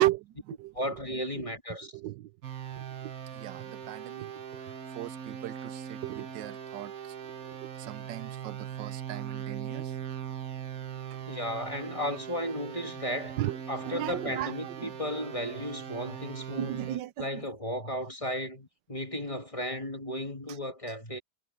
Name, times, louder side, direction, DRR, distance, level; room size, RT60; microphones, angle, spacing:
voice 1, 0.0-1.0 1.4-1.5 1.8-2.3 2.8-7.1 7.4-9.9 13.4-14.9 16.6-17.4, right 15 dB, 85° right, 1.3 m, -35 dB
voice 2, 0.7-1.9 11.3-13.4 13.7-21.2, equal, 20° left, 2.1 m, -35 dB
sound 1, 2.4-17.0, right 9 dB, 55° right, 1.5 m, -40 dB
omnidirectional pair, 1.9 m